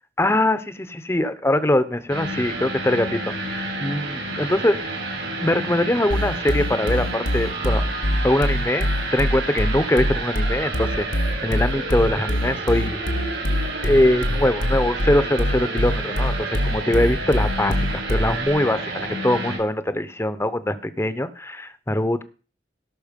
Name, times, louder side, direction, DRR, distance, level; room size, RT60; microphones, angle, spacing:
voice 1, 0.2-4.8 5.4-7.8 8.2-13.0 13.8-22.2, left 1 dB, 15° left, 12 dB, 0.8 m, -22 dB
sound 1, 2.1-19.6, right 2 dB, 80° right, 5.1 m, -30 dB
sound 2, 6.1-18.5, left 1 dB, 90° left, 1.4 m, -24 dB
17.5 x 6.0 x 5.2 m, 0.37 s
head